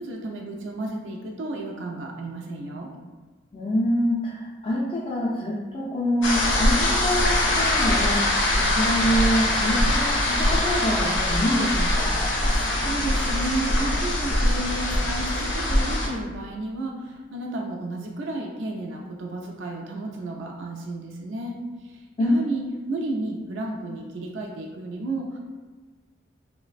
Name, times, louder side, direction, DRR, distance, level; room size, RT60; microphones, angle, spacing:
voice 1, 0.0-2.9 12.5-21.6 22.2-25.4, right 2 dB, 85° right, 0 dB, 0.4 m, -32 dB
voice 2, 3.5-12.3 22.2-22.3, equal, 30° left, -6 dB, 0.3 m, -26 dB
sound 1, 6.2-16.1, left 1 dB, 90° left, 0.6 m, -23 dB
3.2 x 2.0 x 2.4 m, 1.4 s
head